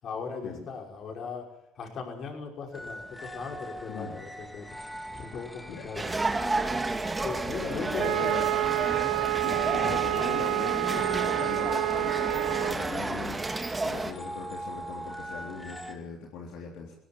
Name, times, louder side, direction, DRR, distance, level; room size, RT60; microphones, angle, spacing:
voice 1, 0.0-1.5 1.8-4.7 5.1-6.0 7.2-8.3, left 5 dB, 50° left, 1 dB, 5.8 m, -38 dB
sound 1, 2.7-15.9, right 1 dB, 10° left, 2.8 m, -42 dB
voice 2, 3.9-4.2 5.7-6.3 7.6-8.8 9.4-16.9, left 6 dB, 75° left, -1 dB, 3.7 m, -40 dB
sound 2, 6.0-14.1, right 2 dB, 15° right, 2.1 m, -31 dB
Wind instrument woodwind instrument, 8.0-12.8, right 18 dB, 80° right, 1.0 m, -28 dB
20.5 x 17.5 x 7.4 m, 0.74 s
supercardioid pair, 95°, 0 cm